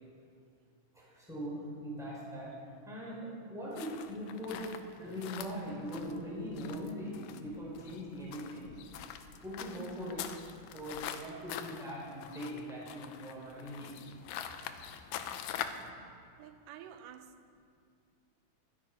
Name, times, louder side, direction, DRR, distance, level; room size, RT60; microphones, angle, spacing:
voice 1, 0.9-2.5 2.8-4.6 5.0-8.7 9.4-10.3 10.7-13.9 15.8-16.0, equal, ahead, 4.1 m, -41 dB
sound 1, 3.7-15.9, left 9 dB, 85° left, 2.2 m, -44 dB
voice 2, 16.4-17.4, right 9 dB, 85° right, 2.3 m, -51 dB
22.0 x 8.8 x 5.2 m
omnidirectional pair, 3.8 m